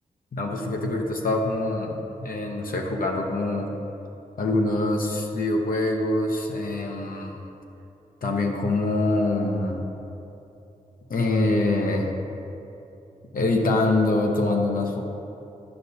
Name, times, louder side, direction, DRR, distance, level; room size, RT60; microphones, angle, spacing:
voice 1, 0.3-3.7 4.4-7.4 8.2-9.8 11.1-12.1 13.3-15.0, left 2 dB, 70° left, 1 dB, 0.7 m, -24 dB
9.8 x 5.4 x 2.7 m, 2.8 s
cardioid pair, 55°, 15 cm